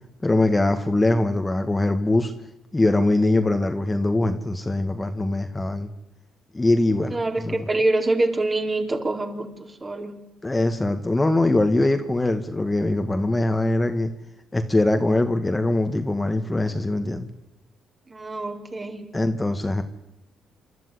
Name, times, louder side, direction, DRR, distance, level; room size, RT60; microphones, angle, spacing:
voice 1, 0.2-2.3 2.7-5.9 6.5-7.2 7.4-7.6 10.4-14.1 14.5-17.3 19.1-19.8, left 2 dB, 15° left, 7 dB, 1.9 m, -22 dB
voice 2, 7.1-10.2 18.1-19.1, right 2 dB, 30° right, 4 dB, 4.2 m, -25 dB
28.0 x 12.5 x 10.0 m, 0.89 s
supercardioid pair, 65°, 0 cm